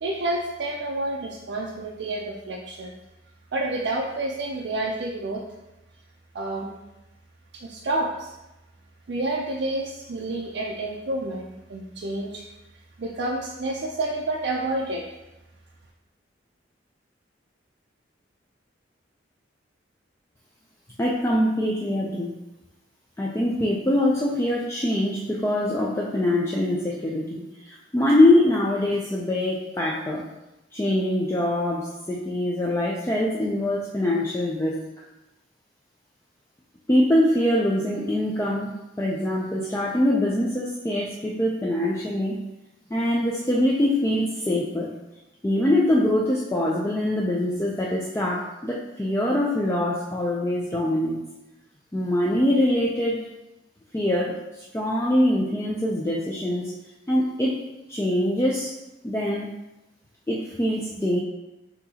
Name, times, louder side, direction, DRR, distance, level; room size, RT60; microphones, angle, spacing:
voice 1, 0.0-2.9 3.5-5.4 6.3-6.7 7.5-8.3 9.1-12.4 13.0-15.0, right 2 dB, 60° right, -2 dB, 0.4 m, -29 dB
voice 2, 21.0-22.3 23.2-30.2 30.7-34.9 36.9-42.4 42.9-44.9 45.4-51.2 51.9-53.2 53.9-56.7 57.1-57.6 57.9-58.7 59.0-59.5 60.3-61.2, left 1 dB, 15° left, -4 dB, 0.4 m, -23 dB
6.1 x 2.8 x 2.8 m, 0.97 s
head